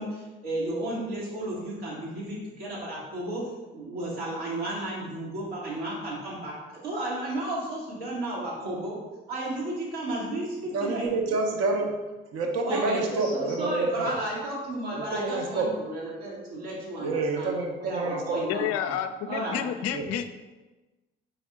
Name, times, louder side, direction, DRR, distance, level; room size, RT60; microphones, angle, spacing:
voice 1, 0.0-3.4 3.7-9.0 9.3-11.1 12.6-17.5 17.8-18.9 19.3-19.6, right 1 dB, 75° right, -5 dB, 1.4 m, -33 dB
voice 2, 10.7-11.9 12.3-14.1 14.9-15.7 17.0-18.4 19.9-20.1, right 3 dB, 55° right, 3 dB, 0.8 m, -28 dB
voice 3, 18.5-20.3, left 9 dB, 55° left, 9 dB, 0.4 m, -30 dB
4.3 x 3.4 x 3.5 m, 1.2 s
figure-of-eight pair, 45°, 30 cm